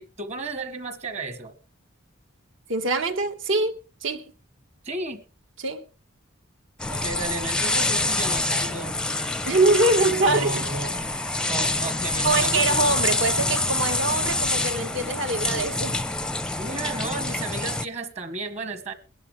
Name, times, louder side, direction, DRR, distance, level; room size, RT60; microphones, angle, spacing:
voice 1, 0.0-1.6 4.8-5.2 6.9-8.9 10.2-10.9 11.5-12.7 16.6-18.9, right 2 dB, 35° right, 1.4 m, -33 dB
voice 2, 2.7-4.3 5.6-5.9 9.4-10.5 12.2-16.0, right 2 dB, 65° right, 1.6 m, -24 dB
sound 1, 6.8-17.9, left 2 dB, 5° left, 0.6 m, -26 dB
21.5 x 11.0 x 3.3 m
head